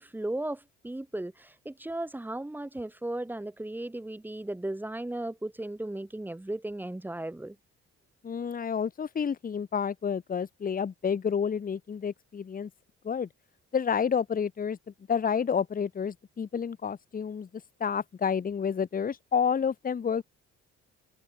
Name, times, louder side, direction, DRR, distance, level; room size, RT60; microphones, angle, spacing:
voice 1, 0.0-7.6, right 1 dB, 5° right, 0.7 m, -36 dB
voice 2, 8.2-12.7 13.0-13.3 13.7-14.8 15.1-17.5 17.8-20.2, left 7 dB, 30° left, 0.8 m, -29 dB
cardioid pair, 90°, 30 cm